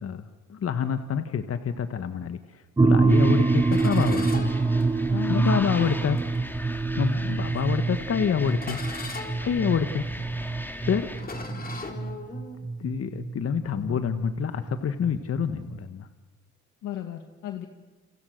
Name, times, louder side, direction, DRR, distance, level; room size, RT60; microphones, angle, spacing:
voice 1, 0.0-4.5 5.3-6.2 7.0-8.8 9.4-10.0 10.8-11.1 12.8-16.1, left 7 dB, 50° left, 9 dB, 1.5 m, -27 dB
sound 1, 2.8-15.8, right 3 dB, 15° right, 0.9 m, -26 dB
sound 2, 3.1-11.2, left 1 dB, 5° left, 3.4 m, -38 dB
sound 3, 3.7-5.4 6.2-6.4 7.1-7.7 8.5-12.6, left 3 dB, 30° left, 4.4 m, -40 dB
voice 2, 5.1-5.9 13.7-14.0 16.8-17.7, left 9 dB, 85° left, 5 dB, 2.2 m, -34 dB
30.0 x 27.5 x 6.7 m, 1.2 s
cardioid pair, 90°, 30 cm